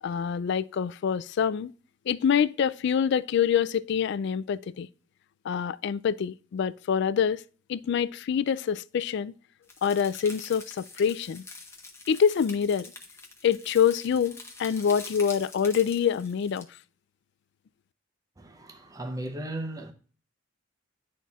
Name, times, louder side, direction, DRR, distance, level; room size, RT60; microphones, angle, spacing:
voice 1, 0.0-1.7 2.1-4.9 5.4-7.4 7.7-9.3 9.8-11.4 12.1-12.9 13.4-16.7, left 7 dB, 60° left, 0.3 m, -26 dB
sound 1, 9.7-16.6, left 3 dB, 15° left, 1.0 m, -45 dB
voice 2, 18.4-19.9, right 1 dB, 20° right, 0.7 m, -36 dB
11.0 x 4.1 x 2.4 m
head